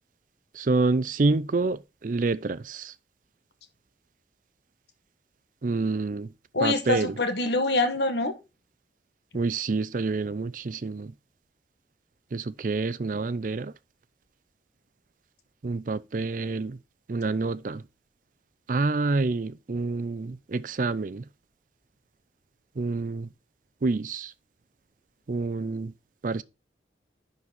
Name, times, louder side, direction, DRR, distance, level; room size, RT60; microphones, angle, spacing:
voice 1, 0.5-2.9 5.6-6.3 6.6-7.2 9.3-11.1 12.3-13.7 15.6-16.8 17.1-17.8 18.7-21.2 22.8-23.3 23.8-24.3 25.3-25.9 26.2-26.4, right 3 dB, 45° right, 0.5 m, -27 dB
voice 2, 6.5-8.3, left 2 dB, 75° left, 1.6 m, -25 dB
11.0 x 4.2 x 4.3 m
head